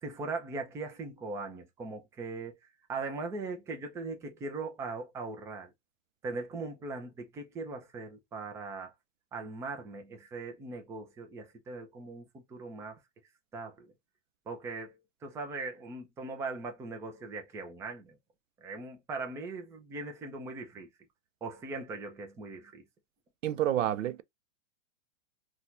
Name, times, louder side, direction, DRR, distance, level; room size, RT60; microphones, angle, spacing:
voice 1, 0.0-2.6 2.9-5.7 6.2-8.9 9.3-13.0 13.5-13.9 14.5-18.2 18.6-20.9 21.4-22.8, right 3 dB, 10° right, 0.4 m, -40 dB
voice 2, 23.4-24.2, right 11 dB, 80° right, 0.6 m, -29 dB
4.1 x 2.3 x 2.5 m
hypercardioid pair, 135°, 38 cm